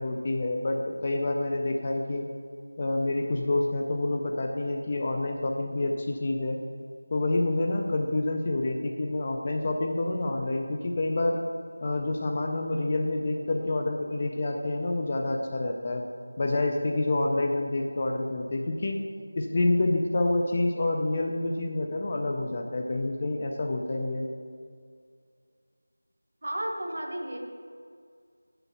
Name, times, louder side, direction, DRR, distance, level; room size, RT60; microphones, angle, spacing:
voice 1, 0.0-2.2 2.8-6.6 7.1-11.4 11.8-16.0 16.4-19.0 19.4-24.3, left 2 dB, 20° left, 2 dB, 0.4 m, -28 dB
voice 2, 26.4-27.4, right 1 dB, 45° right, 2 dB, 1.2 m, -33 dB
6.9 x 5.6 x 7.0 m, 2.1 s
figure-of-eight pair, 175°, 0 cm